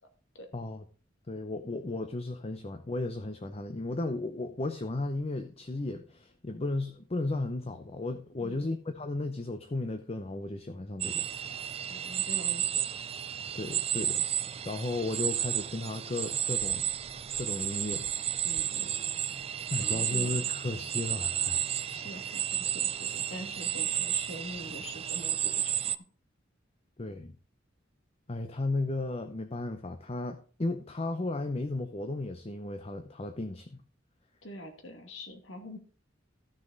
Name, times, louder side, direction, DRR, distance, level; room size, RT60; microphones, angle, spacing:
voice 1, 0.5-0.8 1.3-11.3 13.5-14.3 14.6-16.9 17.4-18.1 19.7-21.7 23.9-24.0 27.0-27.3 28.3-33.8, left 2 dB, 30° left, 7 dB, 0.7 m, -34 dB
voice 2, 8.4-8.8 11.9-12.8 18.4-18.9 19.8-20.4 21.9-26.0 34.4-35.8, equal, 70° left, 5 dB, 2.3 m, -44 dB
sound 1, 11.0-26.0, right 10 dB, 30° right, 0.4 m, -32 dB
14.0 x 6.5 x 4.0 m, 0.39 s
head